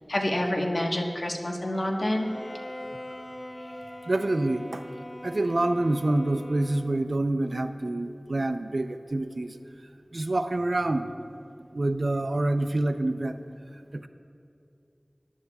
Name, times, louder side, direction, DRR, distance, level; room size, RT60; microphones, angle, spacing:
voice 1, 0.1-2.3, left 1 dB, 70° left, 0 dB, 1.3 m, -27 dB
Wind instrument woodwind instrument, 1.7-7.0, right 1 dB, 40° right, 1.6 m, -49 dB
Bowed string instrument, 2.0-7.1, left 1 dB, 35° left, 0.4 m, -43 dB
voice 2, 4.1-4.8 5.2-9.5 10.1-11.1 11.6-13.4 13.9-14.1, right 2 dB, 80° right, 8 dB, 0.6 m, -27 dB
21.5 x 11.0 x 2.4 m, 2.6 s
wide cardioid pair, 45°, 0 cm